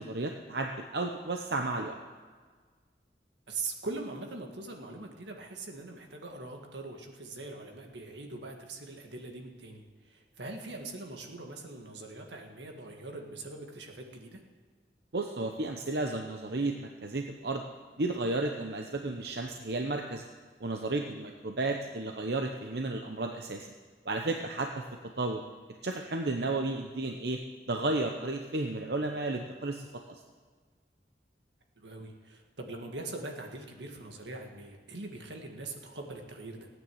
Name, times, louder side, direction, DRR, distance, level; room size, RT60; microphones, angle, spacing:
voice 1, 0.0-2.0 15.1-17.6 18.0-20.2 20.6-23.7 24.1-24.9 25.2-25.4 25.8-27.4 27.7-29.9, right 2 dB, 70° right, 3 dB, 0.9 m, -33 dB
voice 2, 3.5-14.4 31.8-36.7, right 3 dB, 90° right, 2 dB, 2.0 m, -42 dB
17.5 x 9.3 x 7.9 m, 1.5 s
head